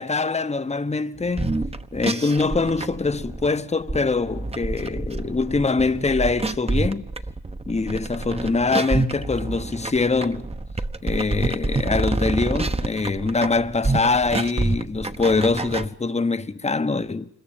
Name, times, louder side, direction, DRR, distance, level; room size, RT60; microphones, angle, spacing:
voice 1, 0.0-1.6 1.9-7.1 7.7-10.5 11.0-17.3, left 3 dB, 15° left, 1.1 m, -23 dB
sound 1, 1.3-15.9, right 2 dB, 15° right, 1.1 m, -27 dB
26.5 x 22.0 x 8.8 m
cardioid pair, 95°, 38 cm